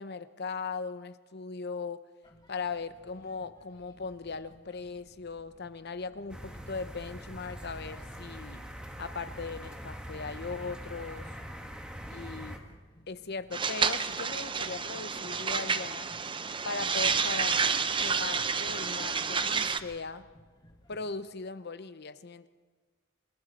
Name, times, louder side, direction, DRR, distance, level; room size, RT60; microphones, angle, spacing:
voice 1, 0.0-2.1 2.5-8.6 9.0-11.3 12.1-12.5 13.1-16.1 16.6-17.6 18.0-20.3 20.9-22.5, left 4 dB, 55° left, 12 dB, 0.9 m, -39 dB
sound 1, 2.2-21.2, left 1 dB, 20° left, 2.1 m, -58 dB
sound 2, 6.3-12.6, equal, 5° right, 1.7 m, -43 dB
sound 3, 13.5-19.8, right 5 dB, 25° right, 0.7 m, -30 dB
29.5 x 20.5 x 4.3 m, 1.4 s
head